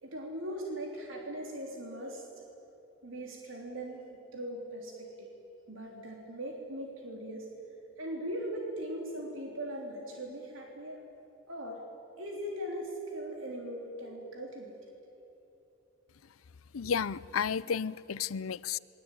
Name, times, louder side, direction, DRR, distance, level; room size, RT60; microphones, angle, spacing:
voice 1, 0.0-2.3 3.0-5.3 5.7-7.5 8.0-11.1 11.5-11.9 12.2-14.8 16.8-16.9, right 1 dB, 70° right, 0 dB, 3.4 m, -40 dB
voice 2, 16.7-18.8, left 7 dB, 80° left, 19 dB, 0.6 m, -32 dB
28.5 x 22.0 x 9.1 m, 2.9 s
head